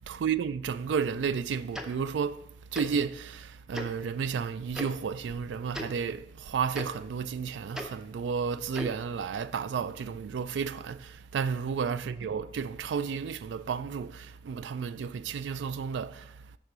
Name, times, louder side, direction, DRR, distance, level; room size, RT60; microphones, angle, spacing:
voice 1, 0.1-16.4, right 6 dB, 75° right, 0.3 m, -32 dB
Tick-tock, 1.7-1.9 2.7-2.9 3.7-3.9 4.7-4.9 5.7-5.9 6.7-6.8 7.7-7.9 8.7-8.9, left 1 dB, 5° right, 0.5 m, -36 dB
6.7 x 3.7 x 5.9 m
head